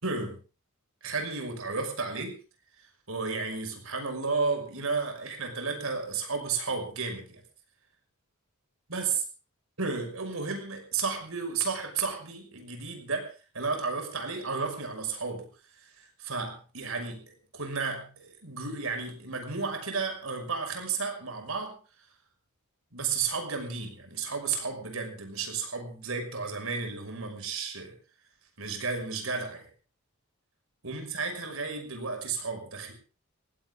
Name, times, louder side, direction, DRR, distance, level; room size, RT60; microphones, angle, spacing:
voice 1, 0.0-0.4 1.0-2.4 3.1-7.4 8.9-9.2 9.8-15.5 15.8-21.8 22.9-27.9 28.6-29.7 30.8-32.9, right 4 dB, 70° right, 4 dB, 5.9 m, -33 dB
19.5 x 17.0 x 3.8 m, 0.37 s
head